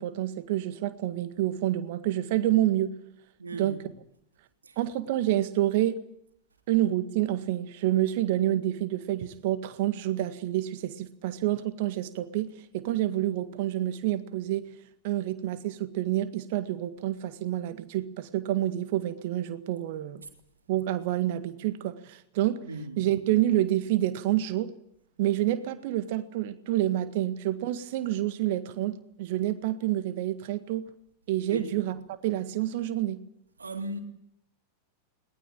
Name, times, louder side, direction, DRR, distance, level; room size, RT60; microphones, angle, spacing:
voice 1, 0.0-2.9 3.5-3.8 4.8-6.0 6.7-14.6 15.0-20.2 20.7-22.7 23.0-24.7 25.2-30.9 31.3-33.2, right 13 dB, 50° right, 1.8 m, -28 dB
voice 2, 3.4-3.9 4.6-4.8 22.6-23.0 31.5-31.7 33.6-34.0, right 2 dB, 75° right, 3.3 m, -36 dB
21.0 x 20.0 x 9.0 m
figure-of-eight pair, 90°, 0 cm